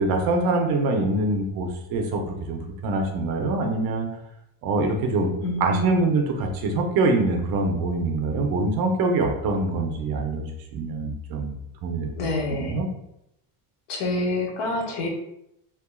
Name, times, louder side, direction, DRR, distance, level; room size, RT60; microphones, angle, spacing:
voice 1, 0.0-4.1 4.6-5.3 5.6-11.6 11.8-12.1 12.6-12.9, right 2 dB, 55° right, 3 dB, 0.7 m, -24 dB
voice 2, 5.4-6.0 12.2-12.8 13.9-15.1, left 2 dB, 80° left, 1 dB, 0.9 m, -27 dB
3.5 x 2.7 x 2.3 m, 0.81 s
cardioid pair, 140°, 42 cm